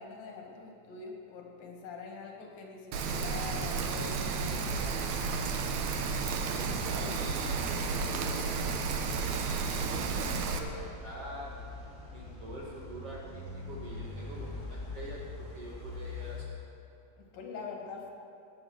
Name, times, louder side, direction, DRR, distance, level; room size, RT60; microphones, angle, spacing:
voice 1, 0.0-5.2 17.2-18.1, left 5 dB, 70° left, 1 dB, 3.1 m, -44 dB
sound 1, 2.9-16.4, left 2 dB, 25° left, 1.4 m, -45 dB
Rain, 2.9-10.6, right 5 dB, 80° right, 1.6 m, -32 dB
voice 2, 6.5-8.8 9.0-11.6 12.1-15.2 15.5-16.6, right 1 dB, 50° right, -4 dB, 2.0 m, -45 dB
18.5 x 8.6 x 6.3 m, 2.8 s
omnidirectional pair, 4.5 m